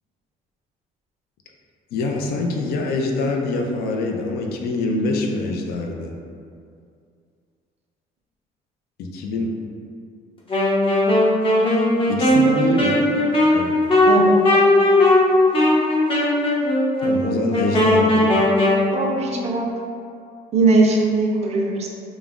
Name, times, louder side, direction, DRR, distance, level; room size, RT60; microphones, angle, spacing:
voice 1, 1.9-6.1 9.0-9.5 12.1-13.0 13.5-13.7 17.0-18.4, left 2 dB, 65° left, 1 dB, 0.4 m, -25 dB
Wind instrument woodwind instrument, 10.5-18.8, left 1 dB, 30° left, 0.7 m, -17 dB
voice 2, 18.9-19.7 20.5-21.9, right 3 dB, 40° right, 0 dB, 0.4 m, -19 dB
2.3 x 2.0 x 3.4 m, 2.4 s
cardioid pair, 110°, 17 cm